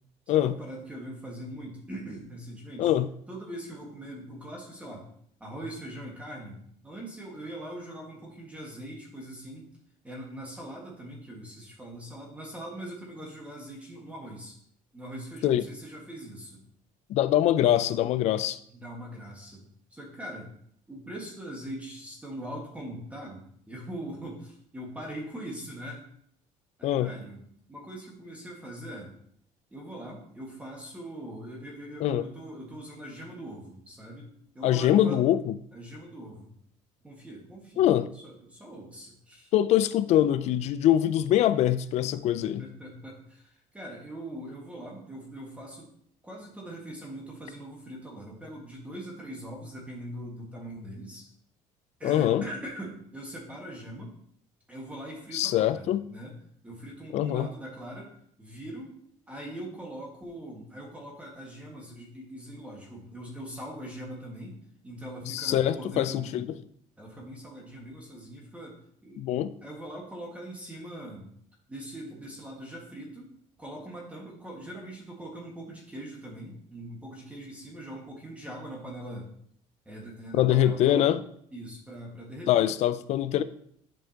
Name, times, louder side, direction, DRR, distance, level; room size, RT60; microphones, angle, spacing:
voice 1, 0.3-2.9 3.3-5.1 5.4-6.6 6.8-9.6 10.0-14.6 14.9-16.6 18.7-20.5 20.9-26.0 26.8-27.4 27.7-29.1 29.7-35.2 35.7-36.5 37.0-37.9 38.2-39.5 42.4-45.9 46.2-51.3 52.0-54.1 54.7-56.3 56.6-58.1 58.4-59.0 59.3-64.6 64.8-66.5 67.0-69.2 69.6-71.3 71.7-73.3 73.6-79.3 79.8-81.1 81.5-82.7, right 1 dB, 10° right, -2 dB, 1.7 m, -41 dB
voice 2, 17.1-18.6 26.8-27.1 32.0-32.2 34.6-35.5 37.8-38.1 39.5-42.6 52.0-52.5 55.3-56.0 57.1-57.5 65.3-66.5 69.2-69.5 80.3-81.2 82.5-83.4, left 12 dB, 55° left, 14 dB, 0.4 m, -23 dB
10.5 x 5.2 x 2.9 m, 0.67 s
cardioid pair, 140°, 13 cm